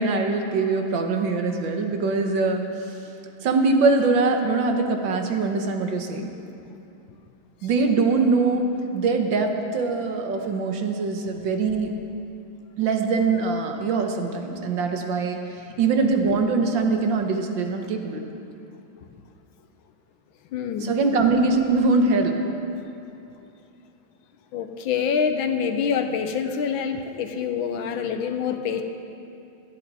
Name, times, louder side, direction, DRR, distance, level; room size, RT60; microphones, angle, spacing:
voice 1, 0.0-2.6 3.4-6.3 7.6-8.7 8.9-11.9 12.8-15.4 15.8-18.2 20.8-22.4, right 3 dB, 70° right, 4 dB, 1.7 m, -22 dB
voice 2, 20.5-20.9 24.5-28.8, left 7 dB, 75° left, 7 dB, 1.5 m, -26 dB
17.5 x 12.0 x 4.1 m, 2.7 s
omnidirectional pair, 2.2 m